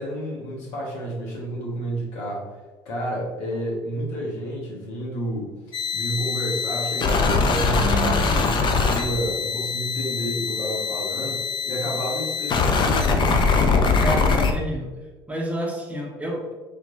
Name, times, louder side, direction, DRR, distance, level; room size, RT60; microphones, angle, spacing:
voice 1, 0.0-2.5 2.8-11.4 11.6-13.4, right 1 dB, 65° left, -3 dB, 1.4 m, -30 dB
sound 1, 5.7-14.5, left 4 dB, 40° left, 0.5 m, -22 dB
voice 2, 7.8-8.7 14.0-14.9 15.3-16.5, equal, 10° right, -2 dB, 1.0 m, -29 dB
3.6 x 3.0 x 2.7 m, 1.3 s
hypercardioid pair, 75°, 13 cm